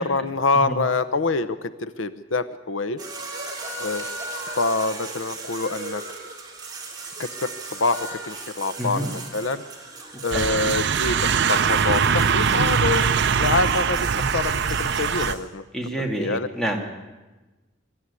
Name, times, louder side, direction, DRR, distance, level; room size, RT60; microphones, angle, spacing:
voice 1, 0.0-3.0 3.8-4.1 4.6-6.0 7.2-9.6 10.2-13.1 13.4-15.6 16.2-16.5, left 3 dB, 80° left, 13 dB, 0.8 m, -26 dB
sound 1, 3.0-15.4, right 3 dB, 20° right, 3.8 m, -36 dB
voice 2, 8.8-9.1 10.3-10.8 15.7-16.9, equal, 5° left, 1 dB, 2.5 m, -28 dB
sound 2, 10.3-15.3, right 6 dB, 60° right, 0.7 m, -22 dB
23.0 x 13.0 x 9.7 m, 1.2 s
head